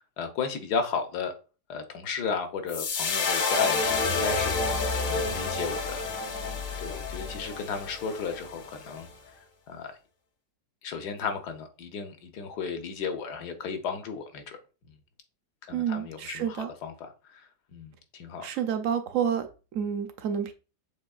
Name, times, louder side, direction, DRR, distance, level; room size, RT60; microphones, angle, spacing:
voice 1, 0.2-1.3 1.7-6.0 6.3-6.4 6.8-9.1 9.7-9.9 10.8-14.6 14.9-15.0 15.6-18.5, left 5 dB, 75° left, 1.4 m, -34 dB
sound 1, 2.7-9.0, left 4 dB, 60° left, 0.6 m, -29 dB
voice 2, 15.7-16.7 18.4-20.5, right 8 dB, 65° right, 0.8 m, -29 dB
7.1 x 3.0 x 2.3 m
omnidirectional pair, 1.7 m